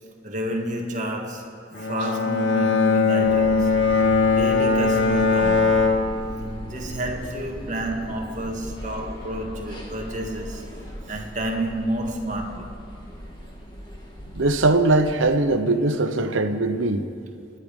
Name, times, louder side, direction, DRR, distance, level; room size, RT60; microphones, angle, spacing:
voice 1, 0.2-1.5 1.8-3.7 4.4-6.0 6.7-12.8, right 1 dB, 40° right, 1.8 m, -30 dB
Bowed string instrument, 1.7-7.0, left 4 dB, 85° left, 2.1 m, -21 dB
sound 1, 3.2-15.4, equal, 25° left, 2.1 m, -38 dB
voice 2, 14.3-17.1, right 2 dB, 90° right, 1.0 m, -21 dB
26.0 x 10.5 x 5.3 m
head